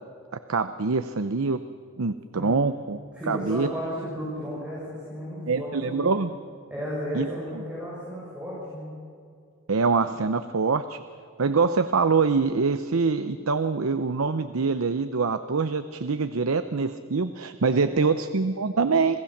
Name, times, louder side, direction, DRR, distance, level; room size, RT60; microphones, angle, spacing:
voice 1, 0.5-1.6 2.0-3.0 3.3-3.7 5.5-6.3 7.1-7.3 9.7-11.0 11.4-19.2, right 4 dB, 75° right, 11 dB, 0.7 m, -24 dB
voice 2, 3.1-6.2 6.7-8.9 17.7-18.2, equal, 5° right, -8 dB, 7.3 m, -34 dB
27.0 x 18.5 x 7.3 m, 2.3 s
head